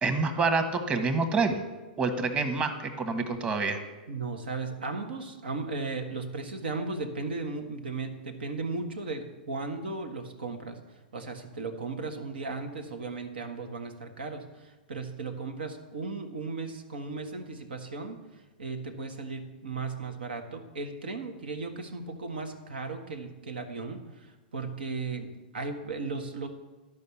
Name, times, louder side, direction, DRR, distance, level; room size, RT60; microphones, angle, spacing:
voice 1, 0.0-1.6 2.0-3.8, right 4 dB, 20° right, 7 dB, 1.3 m, -27 dB
voice 2, 4.1-26.5, right 3 dB, 85° right, 6 dB, 1.5 m, -36 dB
12.0 x 5.3 x 7.1 m, 1.2 s
hypercardioid pair, 125°, 5 cm